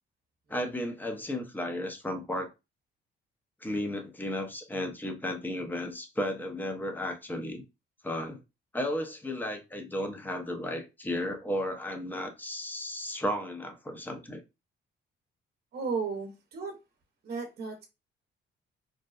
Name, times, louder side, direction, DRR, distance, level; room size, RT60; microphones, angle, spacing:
voice 1, 0.5-2.5 3.6-7.6 8.0-8.4 8.7-14.4, left 1 dB, 10° left, 0.6 m, -34 dB
voice 2, 15.7-16.8 17.2-17.9, right 5 dB, 50° right, 0.7 m, -34 dB
2.6 x 2.1 x 2.3 m
cardioid pair, 90°, 20 cm